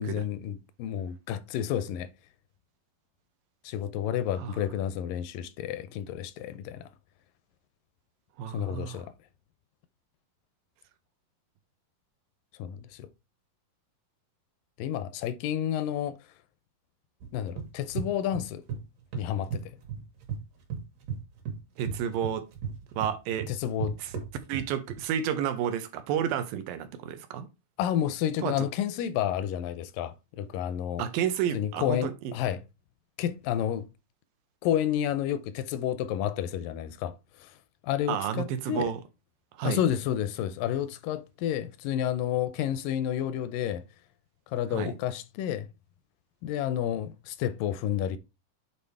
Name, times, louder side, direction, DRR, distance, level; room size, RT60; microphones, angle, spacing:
voice 1, 0.0-2.1 3.6-6.9 8.5-9.1 12.6-13.1 14.8-16.2 17.3-18.6 19.2-19.7 23.5-24.0 27.8-31.0 31.5-32.6 33.2-33.9 34.6-37.5 37.8-38.9 39.6-43.8 44.5-45.7 46.4-48.2, left 10 dB, 80° left, 2.2 m, -30 dB
voice 2, 8.4-9.0 21.8-22.4 23.0-23.5 24.0-24.1 24.5-27.5 28.4-28.7 31.0-32.3 38.1-39.0 39.6-39.8 44.7-44.9, right 9 dB, 90° right, 2.6 m, -31 dB
sound 1, 17.2-18.8 19.1-20.4 20.7-25.0, right 6 dB, 75° right, 3.3 m, -35 dB
8.6 x 4.0 x 3.4 m
omnidirectional pair, 4.0 m